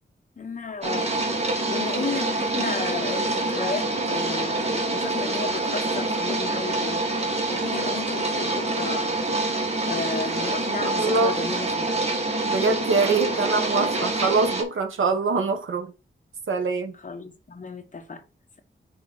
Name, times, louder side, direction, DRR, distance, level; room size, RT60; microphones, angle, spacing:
voice 1, 0.4-1.1 1.7-7.0 7.5-9.1 9.9-12.1 17.0-18.2, left 4 dB, 40° left, 1.1 m, -33 dB
sound 1, 0.8-14.6, right 2 dB, 30° right, 1.5 m, -26 dB
voice 2, 11.0-11.4 12.4-15.9 16.5-16.9, right 4 dB, 80° right, 1.2 m, -24 dB
5.7 x 4.9 x 4.0 m
wide cardioid pair, 170°, 20 cm